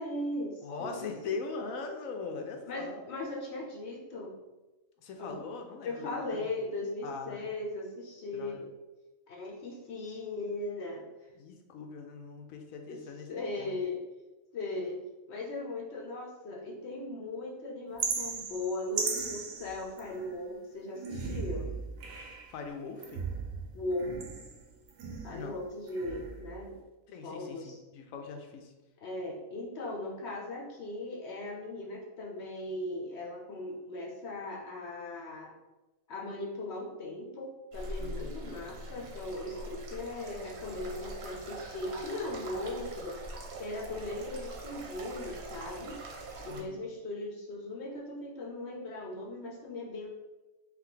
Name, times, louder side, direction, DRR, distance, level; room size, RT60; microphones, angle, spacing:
voice 1, 0.0-1.1 2.7-4.3 5.2-5.3 5.8-8.7 9.3-11.1 12.9-13.0 13.3-15.0 15.3-21.7 23.7-24.1 25.2-26.8 27.2-27.8 29.0-35.5 36.1-43.2 43.6-46.0 46.4-50.1, left 2 dB, 60° left, -1 dB, 0.8 m, -38 dB
voice 2, 0.6-3.1 5.0-6.5 7.0-7.5 8.3-8.6 11.3-13.3 13.6-13.7 22.5-23.2 25.3-25.5 27.1-28.7 38.0-38.5 46.5-46.8, left 4 dB, 85° left, 4 dB, 1.0 m, -41 dB
sound 1, 18.0-20.4 20.9-22.6 23.0-25.5 25.9-26.6, right 5 dB, 85° right, 1.1 m, -37 dB
sound 2, 37.7-46.6, right 2 dB, 60° right, 0.9 m, -43 dB
3.3 x 3.0 x 3.8 m, 1.1 s
omnidirectional pair, 1.4 m